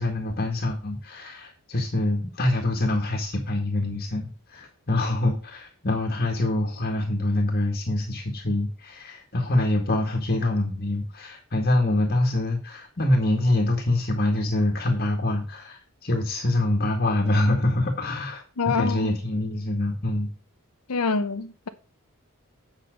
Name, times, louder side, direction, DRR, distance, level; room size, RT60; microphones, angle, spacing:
voice 1, 0.0-20.3, left 1 dB, 45° left, 1.8 m, -25 dB
voice 2, 18.6-19.1 20.9-21.7, left 4 dB, 85° left, 0.8 m, -26 dB
8.7 x 5.9 x 5.1 m
head